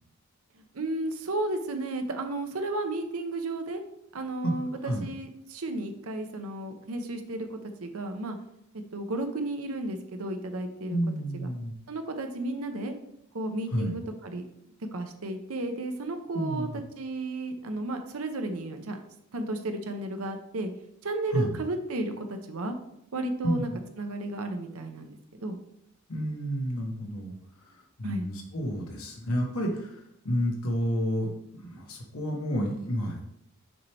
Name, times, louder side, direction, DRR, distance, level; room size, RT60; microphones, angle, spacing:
voice 1, 0.7-3.8 4.1-8.4 8.9-11.0 11.3-11.5 11.9-12.9 13.3-14.4 14.9-19.0 19.3-20.7 21.0-22.7 23.1-23.7 24.0-25.6 28.0-28.3, right 2 dB, 90° right, 6 dB, 0.8 m, -33 dB
voice 2, 10.9-11.7 13.7-13.9 16.3-16.8 21.3-21.6 23.4-23.8 26.1-33.2, equal, 85° left, 0 dB, 1.1 m, -30 dB
6.4 x 4.3 x 3.4 m, 0.76 s
head